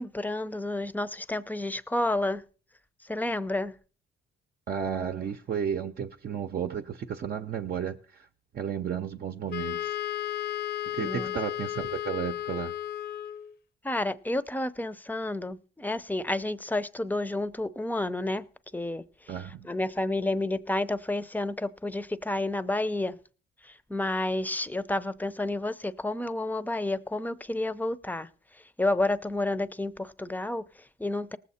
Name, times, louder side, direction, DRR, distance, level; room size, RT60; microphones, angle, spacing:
voice 1, 0.0-2.4 3.0-3.7 11.0-11.3 13.8-18.5 18.7-19.3 19.6-23.2 23.6-31.4, left 2 dB, 10° left, 0.6 m, -30 dB
voice 2, 4.7-8.3 8.5-10.0 10.9-12.7 19.3-19.7, right 8 dB, 50° right, 0.8 m, -33 dB
Wind instrument woodwind instrument, 9.5-13.5, left 12 dB, 55° left, 0.7 m, -34 dB
18.5 x 7.5 x 4.2 m
cardioid pair, 90°, 20 cm